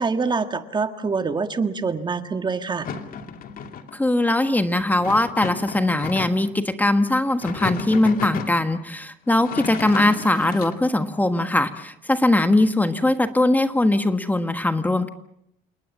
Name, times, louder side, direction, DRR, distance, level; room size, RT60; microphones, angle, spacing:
voice 1, 0.0-2.9, right 4 dB, 25° right, 8 dB, 1.6 m, -25 dB
sound 1, 2.8-4.0 5.0-6.5 7.3-8.6 9.3-10.8, left 6 dB, 55° left, 2.5 m, -33 dB
voice 2, 3.9-15.1, left 2 dB, 10° left, 8 dB, 1.4 m, -21 dB
29.0 x 19.0 x 7.3 m, 0.77 s
cardioid pair, 110°, 17 cm